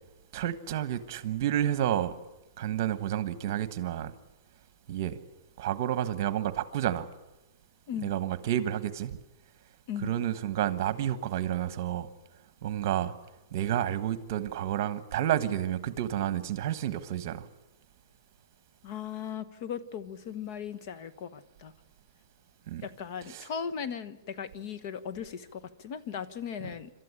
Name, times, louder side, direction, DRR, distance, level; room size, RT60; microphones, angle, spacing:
voice 1, 0.3-2.1 2.6-4.1 4.9-5.2 5.6-7.1 8.0-9.1 10.0-12.1 12.6-13.1 13.5-17.5 22.7-22.8 23.3-23.4, right 11 dB, 45° right, 1.4 m, -30 dB
voice 2, 18.8-21.7 22.8-26.9, left 8 dB, 45° left, 1.1 m, -38 dB
27.5 x 13.0 x 10.0 m
hypercardioid pair, 160°, 2 cm